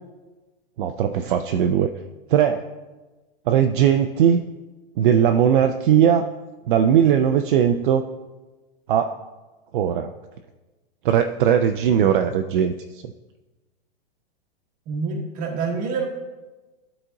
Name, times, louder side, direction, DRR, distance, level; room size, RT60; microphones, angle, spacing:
voice 1, 0.8-1.9 2.3-2.7 3.5-4.4 5.0-6.3 6.7-8.1 8.9-9.2 9.7-10.1 11.0-12.7, right 9 dB, 55° right, 7 dB, 0.4 m, -19 dB
voice 2, 14.9-16.1, right 4 dB, 25° right, 2 dB, 1.1 m, -26 dB
12.0 x 4.1 x 3.7 m, 1.2 s
supercardioid pair, 160°, 31 cm